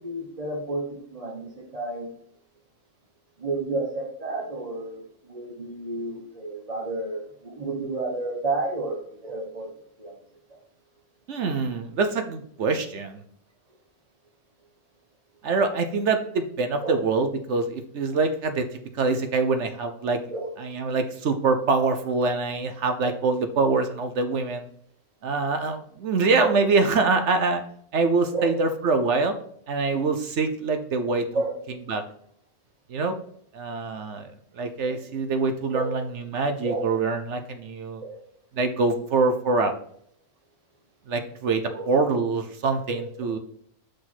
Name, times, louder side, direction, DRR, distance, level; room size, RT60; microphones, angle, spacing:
voice 1, 0.0-2.1 3.4-9.7 10.0-10.1 10.5-10.6 16.8-17.0 20.3-20.5 23.0-23.1 26.4-26.6 28.3-28.5 31.3-31.6 34.8-35.0 35.7-35.9 36.6-36.9 38.0-38.2 41.7-41.9 42.9-43.1, right 2 dB, 30° right, 0 dB, 1.0 m, -31 dB
voice 2, 11.3-13.2 15.4-18.7 18.9-20.2 20.6-24.7 25.2-27.6 27.9-29.3 29.7-31.3 31.9-32.0 32.9-33.2 33.5-38.0 38.6-39.7 41.1-43.4, right 4 dB, 60° right, 7 dB, 0.9 m, -24 dB
6.2 x 5.0 x 4.1 m, 0.66 s
omnidirectional pair, 1.6 m